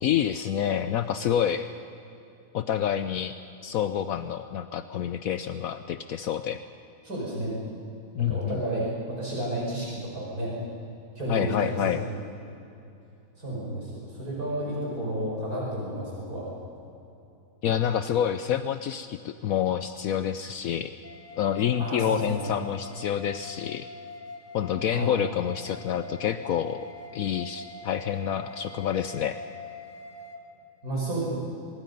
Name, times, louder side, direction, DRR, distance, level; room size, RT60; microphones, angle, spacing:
voice 1, 0.0-1.7 2.5-3.3 3.6-6.6 8.1-8.6 11.3-12.0 17.6-20.9 21.4-23.9 24.5-26.9 27.1-29.4, left 9 dB, 70° left, 10 dB, 1.0 m, -28 dB
voice 2, 7.0-7.5 8.2-10.5 11.2-12.1 13.4-16.5 21.8-22.4 24.9-25.1 30.8-31.3, right 1 dB, 70° right, -4 dB, 5.8 m, -31 dB
sound 1, 21.0-30.4, left 3 dB, 50° left, 2.0 m, -43 dB
24.0 x 22.0 x 5.4 m, 2.7 s
omnidirectional pair, 1.6 m